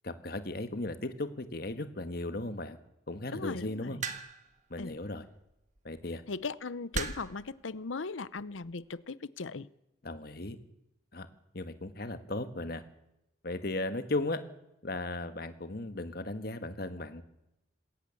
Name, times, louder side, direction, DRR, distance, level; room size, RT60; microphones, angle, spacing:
voice 1, 0.0-2.8 3.1-4.0 4.7-5.2 5.8-6.2 10.0-10.6 11.1-11.3 11.5-12.8 13.4-14.4 14.8-17.2, left 2 dB, 50° left, 10 dB, 1.5 m, -36 dB
voice 2, 3.3-4.0 4.8-5.0 6.3-9.7, left 4 dB, 85° left, 18 dB, 0.8 m, -38 dB
sound 1, 4.0-4.5 5.8-6.0 6.9-7.4 8.4-8.7, right 4 dB, 40° right, 1.5 m, -36 dB
21.0 x 18.0 x 7.1 m, 0.86 s
head